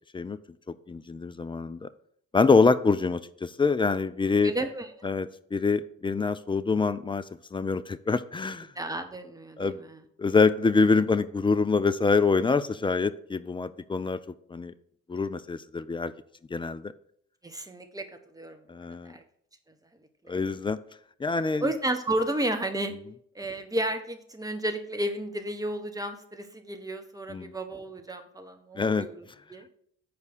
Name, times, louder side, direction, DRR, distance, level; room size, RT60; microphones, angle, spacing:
voice 1, 0.9-1.9 2.3-4.5 5.0-7.2 7.5-8.7 9.6-9.8 10.2-14.2 14.5-14.7 15.1-16.1 16.5-16.9 18.7-19.1 20.3-20.8 21.2-21.7 27.3-27.5 28.8-29.1, left 4 dB, 15° left, 12 dB, 0.4 m, -25 dB
voice 2, 4.4-5.1 8.7-10.0 17.4-18.0 18.3-18.6 19.0-19.2 20.2-20.4 21.6-22.9 23.3-29.7, right 1 dB, 10° right, 7 dB, 1.3 m, -32 dB
7.6 x 4.7 x 6.4 m, 0.65 s
figure-of-eight pair, 45°, 36 cm